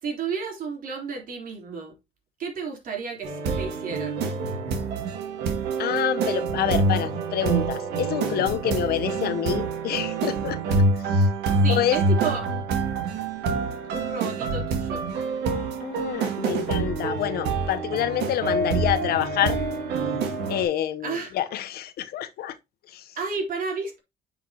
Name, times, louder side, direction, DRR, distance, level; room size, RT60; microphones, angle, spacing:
voice 1, 0.0-2.0 2.4-4.2 11.5-12.5 13.9-15.1 21.0-21.4 23.2-24.0, right 5 dB, 55° right, 3.7 m, -32 dB
sound 1, 3.2-20.6, right 3 dB, 85° right, 2.3 m, -26 dB
voice 2, 5.8-10.6 11.1-11.3 11.7-12.0 15.8-19.6 20.5-22.6 22.9-23.2, left 11 dB, 70° left, 1.0 m, -27 dB
9.3 x 5.9 x 2.9 m
cardioid pair, 110°, 17 cm